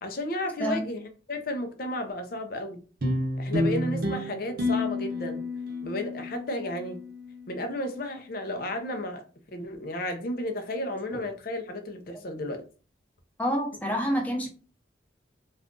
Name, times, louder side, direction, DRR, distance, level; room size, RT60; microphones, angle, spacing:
voice 1, 0.0-1.0 1.3-2.8 3.4-5.5 5.8-7.0 7.5-9.2 9.5-12.6, left 1 dB, 55° left, 0.6 m, -33 dB
sound 1, 3.0-7.6, left 1 dB, 55° right, 0.7 m, -30 dB
voice 2, 13.4-14.5, equal, 10° left, 0.7 m, -27 dB
2.5 x 2.4 x 3.6 m
head